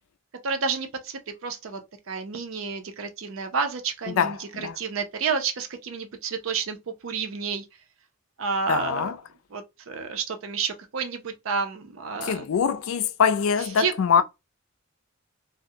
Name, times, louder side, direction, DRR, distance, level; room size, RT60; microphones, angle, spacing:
voice 1, 0.4-1.8 2.1-4.5 4.8-6.8 7.0-7.6 8.4-9.1 9.5-12.5 13.6-13.9, right 5 dB, 75° right, 0.5 m, -30 dB
voice 2, 4.1-4.8 8.7-9.2 12.2-14.2, left 7 dB, 80° left, 0.3 m, -23 dB
2.3 x 2.0 x 2.6 m
head